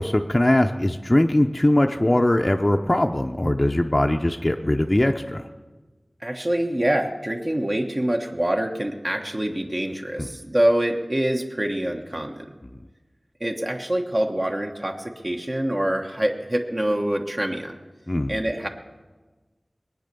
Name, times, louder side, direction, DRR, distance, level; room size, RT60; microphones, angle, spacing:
voice 1, 0.0-5.5 10.2-10.3 12.6-12.8 18.1-18.5, left 1 dB, 30° left, 4 dB, 0.6 m, -21 dB
voice 2, 6.2-12.5 13.4-17.8 18.3-18.7, right 1 dB, 40° right, 2 dB, 1.2 m, -25 dB
21.0 x 9.3 x 6.8 m, 1.3 s
wide cardioid pair, 55°, 0 cm